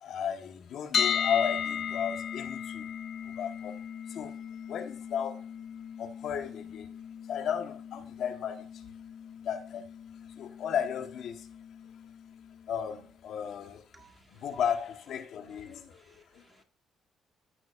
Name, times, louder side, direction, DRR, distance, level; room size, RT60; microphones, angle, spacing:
voice 1, 0.0-2.9 3.3-3.8 4.1-4.3 4.7-5.4 6.0-6.9 7.3-8.8 9.4-9.9 10.4-11.5 12.7-13.8 14.3-16.4, left 8 dB, 75° left, 1.4 m, -34 dB
sound 1, 0.9-12.9, left 7 dB, 55° left, 1.0 m, -37 dB
voice 2, 13.9-14.5 15.4-16.6, right 3 dB, 30° right, 2.0 m, -61 dB
15.0 x 6.6 x 2.6 m
cardioid pair, 90°, 0 cm